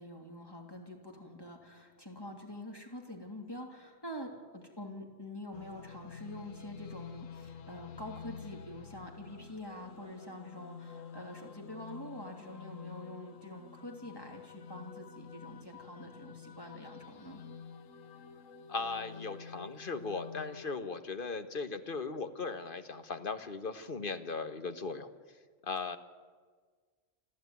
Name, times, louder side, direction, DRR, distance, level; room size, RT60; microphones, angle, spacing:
voice 1, 0.0-17.4, left 1 dB, 20° left, 1 dB, 3.0 m, -46 dB
sound 1, 5.5-20.8, left 6 dB, 85° left, 1.4 m, -49 dB
voice 2, 18.7-25.1 25.6-26.0, left 4 dB, 45° left, 9 dB, 1.3 m, -38 dB
29.5 x 12.0 x 9.5 m, 1.5 s
omnidirectional pair, 1.3 m